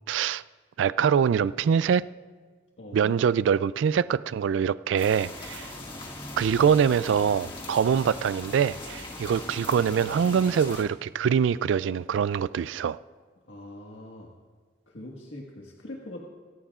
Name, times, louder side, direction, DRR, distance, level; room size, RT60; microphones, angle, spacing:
voice 1, 0.1-0.4 0.8-2.0 2.9-5.7 6.4-13.0, right 7 dB, 85° right, 0.3 m, -24 dB
voice 2, 2.8-3.1 13.4-14.3 14.9-16.2, left 1 dB, 85° left, 1.6 m, -42 dB
sound 1, 5.0-10.8, left 2 dB, 30° left, 1.9 m, -40 dB
27.0 x 14.5 x 2.4 m
head